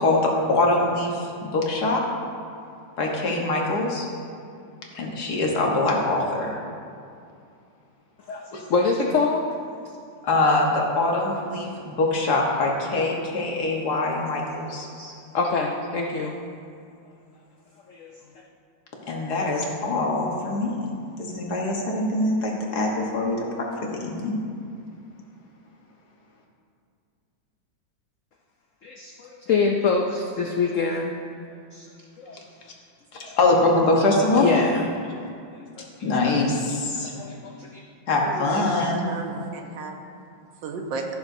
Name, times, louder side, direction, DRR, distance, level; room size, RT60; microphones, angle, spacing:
voice 1, 0.0-2.0 3.0-4.0 4.9-6.5 8.5-8.6 10.2-14.9 19.0-20.8 21.2-23.5 23.9-24.4 33.1-34.5 36.0-37.1 38.1-39.1, left 2 dB, 60° left, -1 dB, 1.7 m, -23 dB
voice 2, 8.3-9.4 15.0-16.4 17.9-18.1 28.8-31.2 31.7-31.9 32.2-32.4 34.3-34.9 36.3-36.4 37.0-37.8, left 4 dB, 75° left, 1 dB, 0.7 m, -25 dB
voice 3, 38.2-40.0 40.6-41.1, right 4 dB, 75° right, 3 dB, 1.6 m, -34 dB
15.5 x 6.9 x 2.7 m, 2.5 s
omnidirectional pair, 2.1 m